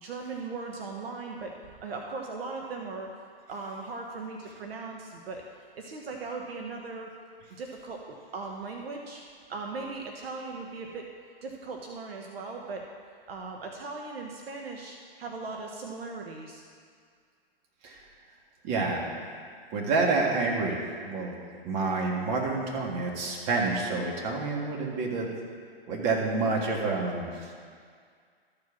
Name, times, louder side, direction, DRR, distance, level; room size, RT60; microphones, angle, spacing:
voice 1, 0.0-3.1 3.5-7.1 7.6-9.2 9.5-11.0 11.4-12.8 13.3-16.6, right 3 dB, 70° right, 1 dB, 1.1 m, -38 dB
voice 2, 18.6-19.1 19.7-20.8 21.1-21.4 21.6-25.3 25.9-27.3, right 3 dB, 35° right, -1 dB, 1.9 m, -28 dB
13.5 x 4.9 x 5.9 m, 2.1 s
hypercardioid pair, 130°, 31 cm